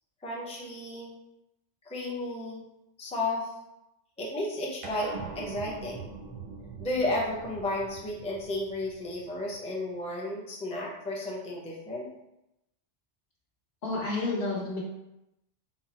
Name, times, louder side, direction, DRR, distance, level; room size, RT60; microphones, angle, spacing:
voice 1, 0.2-1.1 1.9-2.6 3.0-3.5 4.2-6.1 6.8-12.1, left 1 dB, 10° left, -4 dB, 0.4 m, -33 dB
sound 1, 4.8-9.6, right 4 dB, 50° right, 0.4 m, -42 dB
voice 2, 13.8-14.8, left 2 dB, 65° left, -3 dB, 1.2 m, -30 dB
3.9 x 2.0 x 4.1 m, 0.89 s
omnidirectional pair, 1.2 m